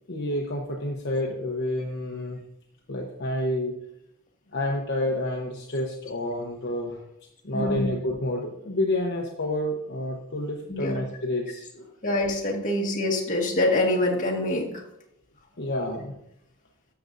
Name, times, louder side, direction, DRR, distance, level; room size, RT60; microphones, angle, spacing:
voice 1, 0.1-2.4 2.9-3.7 4.5-7.0 7.4-11.9 15.6-16.1, left 1 dB, 55° left, -1 dB, 1.0 m, -29 dB
voice 2, 7.5-7.9 10.7-11.0 12.0-14.8, left 1 dB, 40° left, -1 dB, 1.6 m, -25 dB
12.5 x 6.9 x 2.6 m, 0.77 s
head